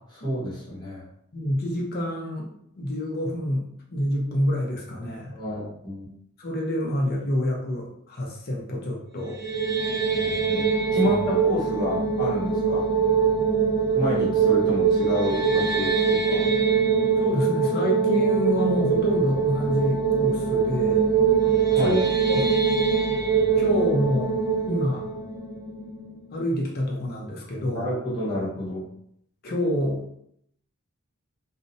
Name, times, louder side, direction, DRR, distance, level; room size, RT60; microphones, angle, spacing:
voice 1, 0.1-1.1 5.3-6.1 10.2-13.1 13.9-16.6 21.7-22.0 27.6-28.9, equal, 20° left, -9 dB, 1.0 m, -29 dB
voice 2, 1.3-2.5 2.8-5.3 6.4-9.4 11.0-11.1 17.2-21.1 21.7-22.0 22.3-22.5 23.6-24.3 24.7-25.0 26.3-27.9 29.4-30.2, equal, 45° left, -1 dB, 0.6 m, -27 dB
sound 1, 9.2-26.4, right 5 dB, 15° right, 0.8 m, -23 dB
2.4 x 2.0 x 2.6 m, 0.70 s
head